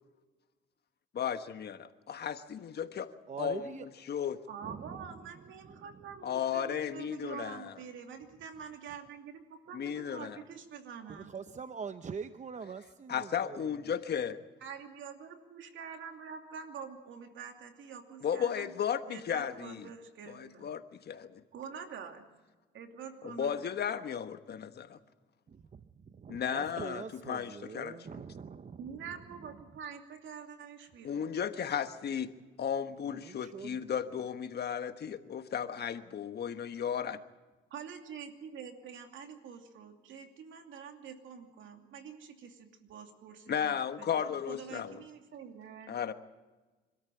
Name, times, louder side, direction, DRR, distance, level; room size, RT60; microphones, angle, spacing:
voice 1, 1.2-1.8 2.1-3.1 3.4-4.4 6.2-7.7 9.7-10.4 13.1-14.4 18.2-19.9 20.3-21.4 23.2-25.0 26.3-28.0 31.0-32.3 32.6-37.2 43.5-45.0 45.9-46.1, left 8 dB, 55° left, 10 dB, 1.3 m, -35 dB
voice 2, 3.3-3.9 4.6-5.1 5.7-5.9 11.1-13.8 25.5-28.9 33.0-34.1, right 6 dB, 35° right, 10 dB, 0.8 m, -44 dB
voice 3, 4.5-11.3 14.6-18.7 19.0-20.7 21.5-22.2 22.7-23.7 28.8-31.3 37.7-46.0, right 7 dB, 75° right, 5 dB, 2.7 m, -46 dB
26.0 x 13.5 x 8.9 m, 1.2 s
cardioid pair, 90°, 20 cm